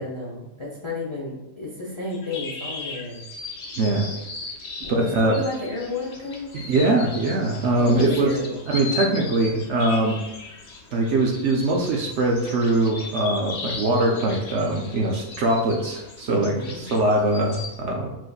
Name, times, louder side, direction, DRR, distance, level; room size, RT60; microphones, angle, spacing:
voice 1, 0.0-3.2 4.8-7.1 7.8-8.6 16.3-16.8, left 2 dB, 35° left, -4 dB, 0.5 m, -32 dB
sound 1, 2.1-17.8, left 3 dB, 60° left, 1.0 m, -37 dB
voice 2, 3.8-4.1 4.9-5.4 6.5-8.3 8.7-10.2 10.9-18.1, right 2 dB, 65° right, 1 dB, 0.8 m, -22 dB
7.4 x 2.6 x 2.3 m, 0.92 s
omnidirectional pair, 1.5 m